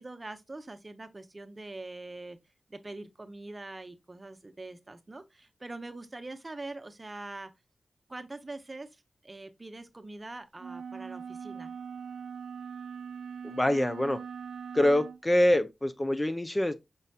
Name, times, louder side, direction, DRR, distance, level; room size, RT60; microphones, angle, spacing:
voice 1, 0.0-2.4 2.7-7.5 8.1-8.9 9.2-11.7, right 2 dB, 30° right, 0.8 m, -43 dB
sound 1, 10.6-15.2, right 6 dB, 85° right, 0.4 m, -41 dB
voice 2, 13.4-14.2 14.7-16.7, left 1 dB, 20° left, 0.5 m, -25 dB
5.4 x 4.0 x 2.3 m
cardioid pair, 60°, 0 cm